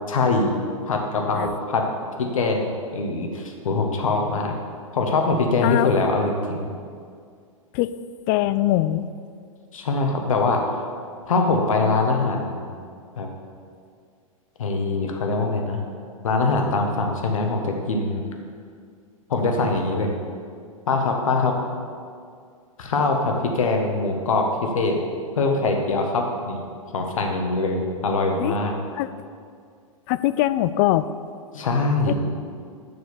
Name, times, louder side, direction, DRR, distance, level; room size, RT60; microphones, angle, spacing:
voice 1, 0.1-0.5 0.9-1.9 2.2-4.5 4.9-6.7 9.7-10.6 11.2-12.7 13.2-13.3 14.6-15.8 16.2-18.2 19.3-20.1 20.9-21.6 22.8-25.0 25.3-26.6 26.9-28.7 31.5-32.2, left 3 dB, 70° left, 3 dB, 1.4 m, -23 dB
voice 2, 8.3-9.1 28.4-28.6 29.0-29.1 30.1-31.1 32.1-32.2, left 15 dB, 35° left, 14 dB, 0.3 m, -22 dB
7.0 x 6.3 x 7.1 m, 2.2 s
figure-of-eight pair, 110°, 18 cm